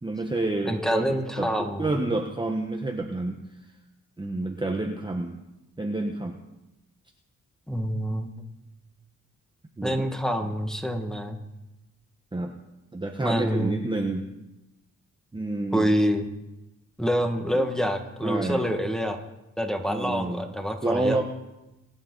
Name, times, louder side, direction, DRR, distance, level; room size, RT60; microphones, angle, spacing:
voice 1, 0.0-1.0 1.4-3.4 4.2-5.3 5.8-6.4 9.8-10.1 12.3-12.5 12.9-14.3 15.3-15.9 17.5-17.6 18.2-18.6 19.9-20.5 20.8-21.2, right 2 dB, 15° right, 3 dB, 1.1 m, -29 dB
voice 2, 0.6-1.9 7.7-8.3 9.8-11.4 13.2-13.8 15.7-16.2 17.0-19.2 19.6-21.2, equal, ahead, 4 dB, 1.7 m, -26 dB
26.0 x 8.8 x 4.0 m, 0.98 s
cardioid pair, 100°, 32 cm